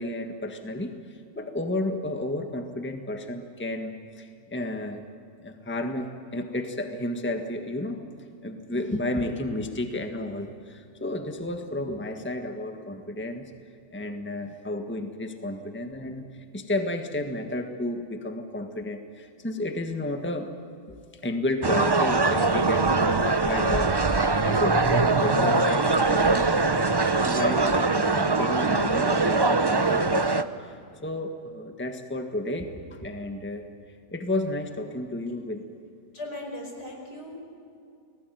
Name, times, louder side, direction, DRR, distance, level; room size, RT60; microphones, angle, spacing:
voice 1, 0.0-5.0 5.4-13.5 13.9-20.5 20.9-30.8 31.0-33.6 34.1-35.6, left 1 dB, 5° left, 5 dB, 1.6 m, -32 dB
sound 1, 21.6-30.4, right 3 dB, 25° right, 0.5 m, -22 dB
voice 2, 36.1-37.4, left 1 dB, 75° left, 2 dB, 5.7 m, -38 dB
29.5 x 20.0 x 9.4 m, 2.5 s
omnidirectional pair, 1.8 m